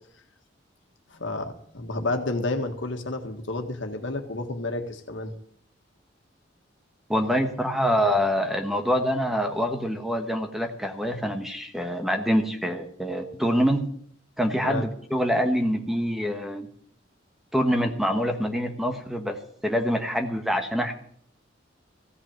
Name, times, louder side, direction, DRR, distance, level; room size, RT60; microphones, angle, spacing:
voice 1, 1.1-5.3 14.6-14.8, left 2 dB, 85° left, 4 dB, 1.7 m, -30 dB
voice 2, 7.1-13.8 14.4-16.7 17.5-19.4 19.6-20.9, equal, ahead, 5 dB, 1.2 m, -25 dB
15.5 x 5.8 x 8.9 m, 0.62 s
head